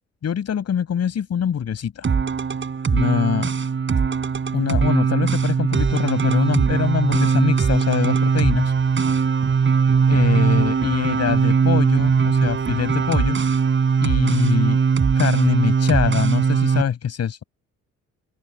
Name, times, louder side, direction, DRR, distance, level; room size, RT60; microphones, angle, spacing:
voice 1, 0.2-2.1 2.9-3.5 4.5-8.7 10.1-13.4 14.0-14.8 15.1-17.4, left 8 dB, 55° left, 6.8 m, -23 dB
sound 1, 2.0-16.8, right 6 dB, 40° right, 5.3 m, -20 dB
open air
cardioid pair, 90°, 30 cm